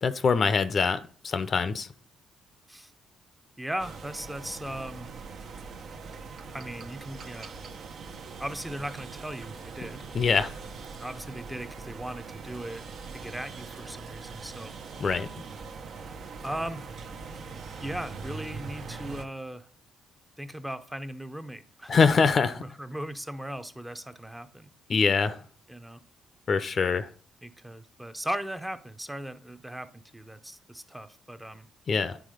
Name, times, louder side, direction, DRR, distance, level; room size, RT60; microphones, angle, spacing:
voice 1, 0.0-1.9 10.1-10.5 15.0-15.3 21.9-22.6 24.9-25.4 26.5-27.1 31.9-32.2, left 5 dB, 45° left, 13 dB, 0.6 m, -24 dB
voice 2, 3.6-5.1 6.5-7.5 8.4-10.0 11.0-12.8 13.1-14.7 16.4-16.9 17.8-19.7 20.4-22.0 22.6-24.7 25.7-26.0 27.4-31.7, right 1 dB, 5° right, 9 dB, 0.6 m, -38 dB
sound 1, 3.8-19.2, right 4 dB, 65° right, 0.8 m, -42 dB
9.2 x 3.6 x 5.0 m, 0.43 s
cardioid pair, 90°, 0 cm